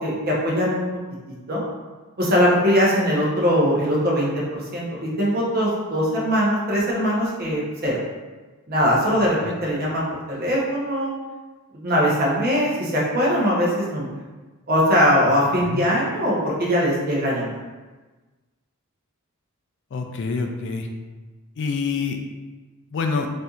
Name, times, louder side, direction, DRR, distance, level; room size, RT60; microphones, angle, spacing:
voice 1, 0.0-0.8 1.5-1.6 2.2-8.0 8.7-11.1 11.8-14.1 14.7-17.5, equal, 40° right, -4 dB, 0.8 m, -21 dB
voice 2, 19.9-20.9 21.6-22.2 22.9-23.3, left 4 dB, 55° left, 5 dB, 0.3 m, -26 dB
4.2 x 2.6 x 2.4 m, 1.3 s
head